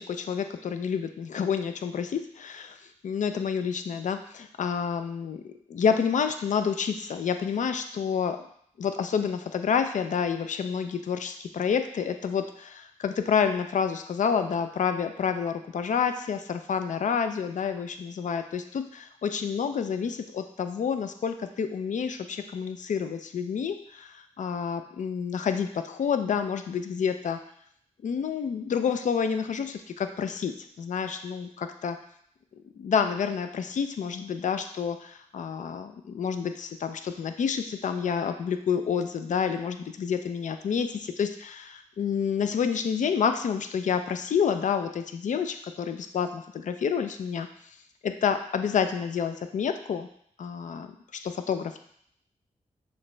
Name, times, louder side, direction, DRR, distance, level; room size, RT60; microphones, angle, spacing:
voice 1, 0.0-2.8 3.0-8.4 8.8-27.4 28.0-30.5 30.8-32.0 32.7-47.5 48.0-50.1 50.4-50.9 51.2-51.8, left 7 dB, 70° left, 8 dB, 0.4 m, -29 dB
6.3 x 2.3 x 3.2 m, 0.66 s
cardioid pair, 50°, 13 cm